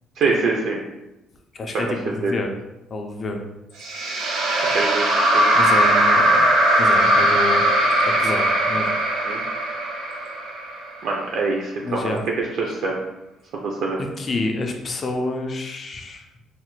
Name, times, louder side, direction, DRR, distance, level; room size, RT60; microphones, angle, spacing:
voice 1, 0.2-0.8 1.7-1.9 2.2-2.3 4.7-5.5 9.3-9.4 11.0-12.2 12.6-13.0 13.5-14.0, right 3 dB, 55° right, -1 dB, 0.4 m, -24 dB
voice 2, 1.5-2.5 2.9-3.4 5.5-7.7 8.0-8.9 11.8-12.2 14.2-16.2, left 2 dB, 30° left, 3 dB, 0.3 m, -28 dB
sound 1, 3.8-11.1, right 1 dB, 80° right, 0.8 m, -19 dB
3.1 x 2.1 x 3.0 m, 0.95 s
cardioid pair, 175°, 0 cm